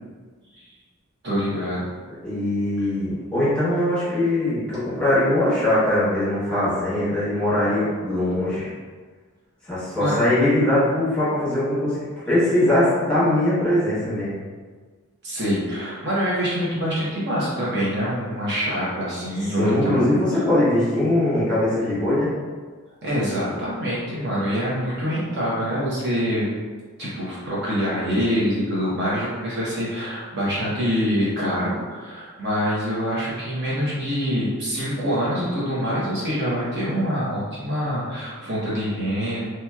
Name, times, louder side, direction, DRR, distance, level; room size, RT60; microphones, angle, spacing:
voice 1, 1.2-1.9 2.8-2.9 10.0-10.2 15.2-20.4 23.0-26.5 27.0-39.4, equal, 50° right, -8 dB, 0.8 m, -25 dB
voice 2, 2.2-8.7 9.6-12.0 12.3-14.4 19.6-22.3, left 1 dB, 5° left, -12 dB, 1.2 m, -21 dB
2.9 x 2.8 x 2.3 m, 1.5 s
head